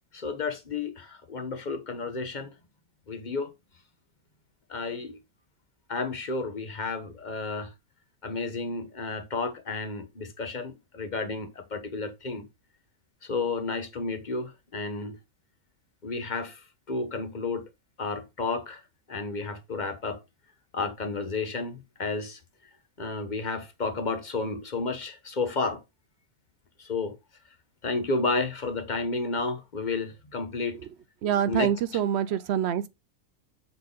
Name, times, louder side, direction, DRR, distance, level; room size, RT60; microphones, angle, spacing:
voice 1, 0.1-2.5 3.1-3.5 4.7-5.2 5.9-7.7 8.2-12.4 13.2-15.2 16.0-17.7 18.0-18.8 19.1-20.2 20.7-22.4 23.0-25.8 26.8-27.2 27.8-30.8 31.5-31.7, left 3 dB, 35° left, 0.9 m, -31 dB
voice 2, 31.2-32.9, right 9 dB, 65° right, 0.6 m, -26 dB
7.0 x 3.6 x 3.8 m
omnidirectional pair, 1.5 m